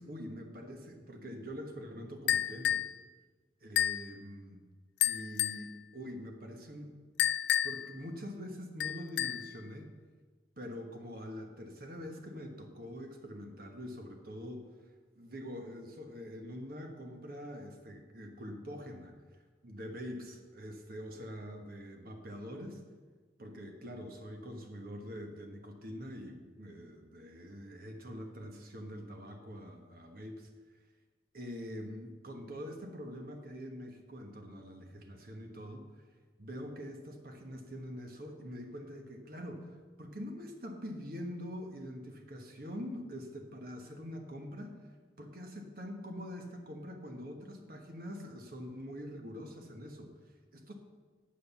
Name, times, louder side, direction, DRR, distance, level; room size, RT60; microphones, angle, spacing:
voice 1, 0.0-2.8 3.6-4.6 5.0-6.9 7.6-9.9 10.6-22.8 23.4-30.8 31.3-35.8 36.4-50.7, equal, 55° right, 4 dB, 1.3 m, -45 dB
sound 1, 2.3-2.9 3.8-4.1 5.0-5.7 7.2-7.9 8.8-9.5, left 10 dB, 70° left, 0.4 m, -30 dB
8.6 x 7.9 x 7.0 m, 1.4 s
head